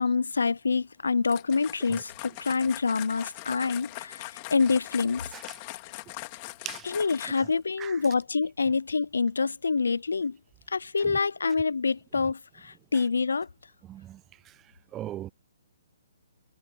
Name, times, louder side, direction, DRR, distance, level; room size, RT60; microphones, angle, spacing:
voice 1, 0.0-5.2 6.8-10.4 10.7-13.5, left 4 dB, 75° left, 0.6 m, -26 dB
sound 1, 1.2-7.6, left 26 dB, 35° left, 3.2 m, -41 dB
voice 2, 14.9-15.3, right 13 dB, 20° right, 0.3 m, -38 dB
figure-of-eight pair, 130°, 0 cm